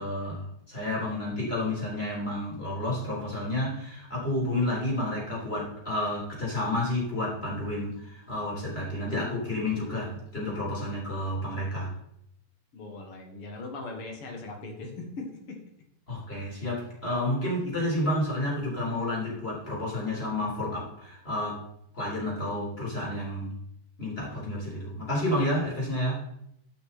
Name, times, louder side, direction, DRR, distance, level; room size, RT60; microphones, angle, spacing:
voice 1, 0.0-11.9 16.1-21.6 21.9-23.5 24.0-26.2, left 1 dB, 20° left, -5 dB, 3.3 m, -30 dB
voice 2, 12.7-15.6, left 3 dB, 50° left, 1 dB, 2.3 m, -39 dB
13.0 x 5.9 x 4.2 m, 0.75 s
omnidirectional pair, 3.8 m